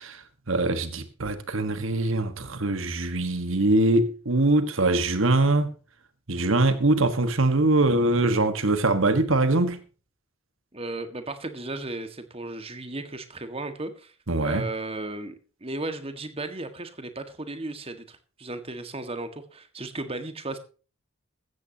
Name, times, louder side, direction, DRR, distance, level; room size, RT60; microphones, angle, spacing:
voice 1, 0.0-5.7 6.3-9.8 14.3-14.6, right 2 dB, 65° right, 1.5 m, -23 dB
voice 2, 10.7-14.1 14.4-15.3 15.6-20.6, right 2 dB, 25° right, 1.7 m, -35 dB
16.0 x 13.5 x 2.9 m
head